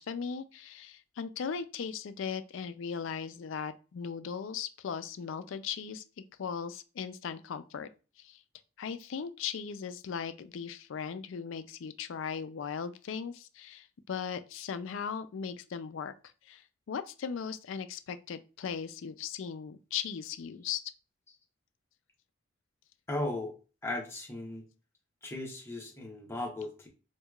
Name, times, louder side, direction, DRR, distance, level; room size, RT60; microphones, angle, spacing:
voice 1, 0.0-6.0 6.4-7.9 8.2-8.4 8.8-16.1 16.5-16.6 16.9-20.8, left 6 dB, 75° left, 0.4 m, -38 dB
voice 2, 23.1-23.5 23.8-24.6 25.2-26.9, left 2 dB, 15° left, 0.8 m, -36 dB
4.6 x 2.3 x 2.3 m
head